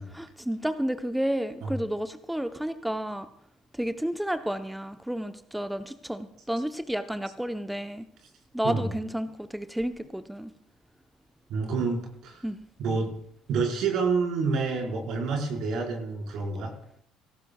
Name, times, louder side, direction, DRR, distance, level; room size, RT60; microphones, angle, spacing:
voice 1, 0.1-3.3 3.7-8.1 8.5-10.5 12.4-12.6, equal, 5° right, 10 dB, 0.8 m, -31 dB
voice 2, 11.5-12.4 12.8-13.1 13.5-16.7, right 4 dB, 50° right, 0 dB, 4.9 m, -28 dB
24.0 x 18.0 x 2.4 m, 0.71 s
figure-of-eight pair, 55°, 0 cm